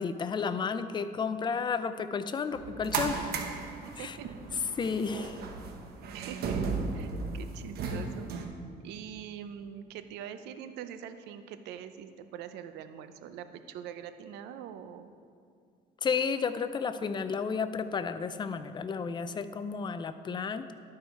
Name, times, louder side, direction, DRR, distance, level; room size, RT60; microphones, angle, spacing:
voice 1, 0.0-3.3 4.0-4.2 4.7-5.4 16.0-20.7, left 5 dB, 25° left, 11 dB, 0.4 m, -32 dB
sound 1, 2.5-8.4, right 4 dB, 65° right, 0.9 m, -35 dB
voice 2, 3.8-4.3 6.1-6.6 6.9-8.3 8.8-15.1, right 9 dB, 90° right, 10 dB, 0.5 m, -44 dB
12.0 x 4.8 x 4.5 m, 2.3 s
cardioid pair, 110°, 17 cm